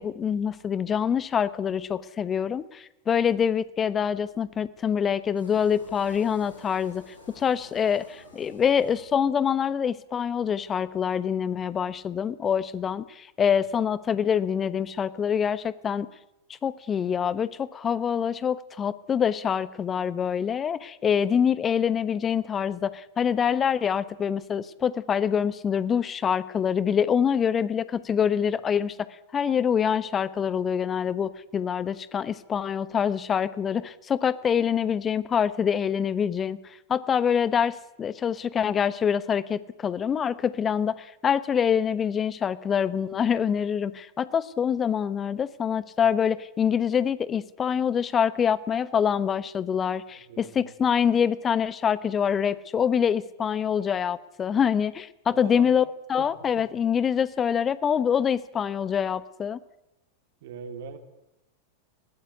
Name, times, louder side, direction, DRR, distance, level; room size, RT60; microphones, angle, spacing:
voice 1, 0.0-7.0 7.4-16.1 16.6-29.1 29.3-36.6 36.9-55.8 56.1-59.6, left 7 dB, 25° left, 17 dB, 1.0 m, -25 dB
sound 1, 5.4-9.6, left 2 dB, 80° left, 6.5 m, -51 dB
voice 2, 50.1-50.7 55.3-55.8 56.2-56.3 56.6-56.7 60.4-61.0, right 7 dB, 55° right, 7 dB, 3.1 m, -41 dB
20.5 x 18.0 x 9.5 m, 0.90 s
figure-of-eight pair, 90°, 0 cm